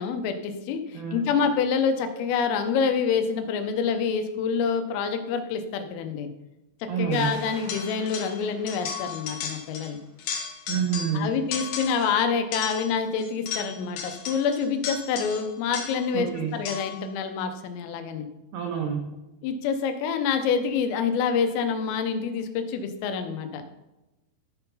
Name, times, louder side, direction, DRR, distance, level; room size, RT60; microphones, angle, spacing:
voice 1, 0.0-6.3 6.8-10.0 11.1-18.3 19.4-23.7, left 6 dB, 90° left, 7 dB, 3.5 m, -27 dB
voice 2, 0.9-1.3 6.9-7.4 10.7-11.3 16.1-16.5 18.5-19.1, right 7 dB, 85° right, 2 dB, 2.2 m, -28 dB
sound 1, 7.1-10.5, right 3 dB, 70° right, 3.8 m, -49 dB
sound 2, 7.7-8.4 8.7-9.9 10.2-11.2 11.5-12.1 12.5-16.1 16.7-17.0, left 6 dB, 70° left, 2.4 m, -35 dB
13.5 x 4.5 x 5.5 m, 0.99 s
omnidirectional pair, 5.7 m